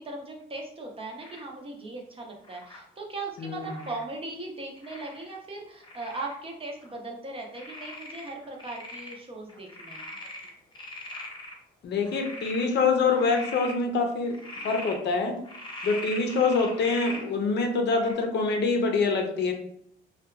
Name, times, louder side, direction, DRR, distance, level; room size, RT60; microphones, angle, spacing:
voice 1, 0.0-10.1 14.6-14.7 16.7-16.8, right 2 dB, 30° right, 0 dB, 0.7 m, -39 dB
Frog, 1.2-1.5 2.4-2.8 3.6-4.0 4.8-5.3 5.8-6.4 6.8-6.9 7.5-9.2 9.5-11.5 12.0-12.7 13.1-13.8 14.3-15.0 15.4-17.2 17.9-18.1, left 1 dB, 25° left, 0.9 m, -41 dB
voice 2, 3.4-3.8 11.8-14.4 14.6-15.4 15.8-19.5, left 4 dB, 60° left, 3 dB, 0.6 m, -25 dB
2.7 x 2.3 x 2.3 m, 0.71 s
cardioid pair, 90°, 20 cm